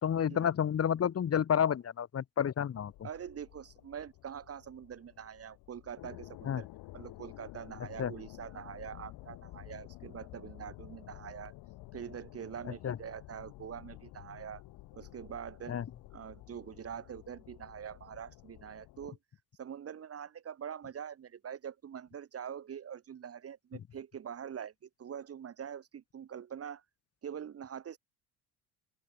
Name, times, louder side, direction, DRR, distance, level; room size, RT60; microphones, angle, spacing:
voice 1, 0.0-2.9 6.5-6.6 8.0-8.1 12.8-13.0 15.7-15.8, left 8 dB, 30° left, 2.1 m, -30 dB
sound 1, 2.7-19.1, left 18 dB, 55° left, 8.0 m, -52 dB
voice 2, 3.0-6.7 6.9-11.5 11.9-14.6 14.9-15.8 16.1-19.2 19.6-26.8 27.2-28.0, right 8 dB, 30° right, 2.0 m, -44 dB
open air
figure-of-eight pair, 65°, 45 cm